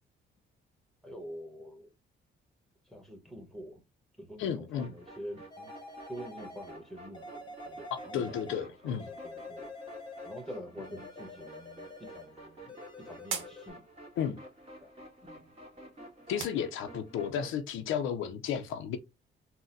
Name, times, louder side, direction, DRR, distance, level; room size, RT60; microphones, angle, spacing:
voice 1, 1.0-1.9 2.9-3.8 4.2-5.7 6.1-8.4 8.7-9.7 10.2-13.8 14.8-14.9 15.2-15.5, equal, ahead, 1.1 m, -46 dB
voice 2, 4.4-4.9 7.9-9.1 14.2-14.4 16.3-19.0, left 8 dB, 80° left, 0.5 m, -33 dB
sound 1, 4.8-17.6, right 1 dB, 30° right, 1.6 m, -51 dB
sound 2, 5.5-6.8 7.1-8.7 9.0-10.5 10.8-12.3 12.7-13.7, left 2 dB, 20° left, 1.0 m, -47 dB
sound 3, 11.8-17.3, right 7 dB, 85° right, 0.8 m, -46 dB
4.0 x 2.1 x 2.5 m
cardioid pair, 90°, 20 cm